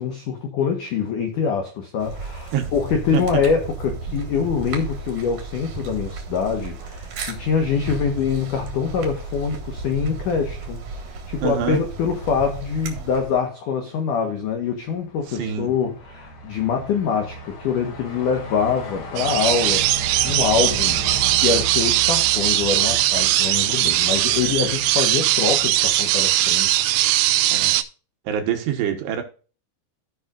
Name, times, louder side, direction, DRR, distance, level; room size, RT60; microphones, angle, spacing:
voice 1, 0.0-19.8 20.2-21.0 21.3-26.9, left 6 dB, 85° left, 4 dB, 1.8 m, -24 dB
sound 1, 2.0-13.4, right 4 dB, 55° right, 2.4 m, -34 dB
voice 2, 11.4-11.8 15.3-15.7 27.5-27.8 28.3-29.2, right 9 dB, 70° right, 5 dB, 3.0 m, -25 dB
Truck, 14.9-24.3, right 2 dB, 45° left, 2.8 m, -35 dB
sound 2, 19.2-27.8, right 15 dB, 90° right, 3.2 m, -20 dB
16.0 x 5.6 x 2.4 m, 0.36 s
omnidirectional pair, 5.5 m